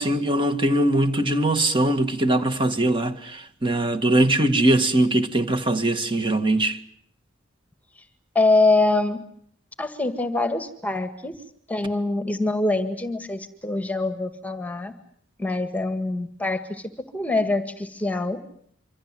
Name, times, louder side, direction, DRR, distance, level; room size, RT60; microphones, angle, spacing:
voice 1, 0.0-6.8, right 1 dB, 25° right, 2.0 m, -21 dB
voice 2, 8.4-9.2 9.8-11.3 11.7-14.9 15.4-16.8 17.1-18.4, left 2 dB, 10° left, 1.8 m, -24 dB
27.0 x 25.0 x 7.6 m
head